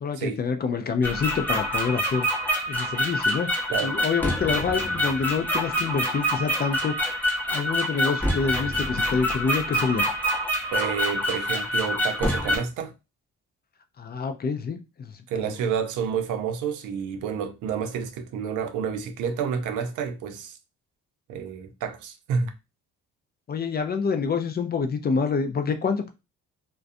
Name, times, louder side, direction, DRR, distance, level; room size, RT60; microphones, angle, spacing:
voice 1, 0.0-2.3 2.7-3.5 3.8-6.9 7.5-10.1 14.0-15.4 23.5-26.1, left 5 dB, 35° left, 0.4 m, -27 dB
sound 1, 1.0-12.6, equal, 5° left, 0.7 m, -26 dB
voice 2, 10.7-12.9 15.3-20.6 21.3-22.5, right 7 dB, 80° right, 0.5 m, -29 dB
2.4 x 2.2 x 2.5 m
cardioid pair, 90°, 30 cm